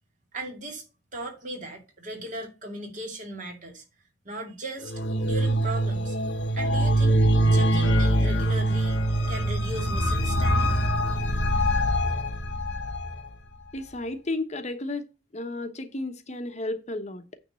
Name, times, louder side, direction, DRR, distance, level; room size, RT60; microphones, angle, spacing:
voice 1, 0.3-0.8 1.1-3.8 4.2-6.2 6.5-9.0 9.3-10.7, right 1 dB, 45° right, 2.6 m, -37 dB
sound 1, 4.9-13.2, right 1 dB, 80° left, 1.3 m, -23 dB
voice 2, 13.7-15.1 15.3-17.3, left 2 dB, 40° left, 1.1 m, -33 dB
9.4 x 3.6 x 6.9 m
head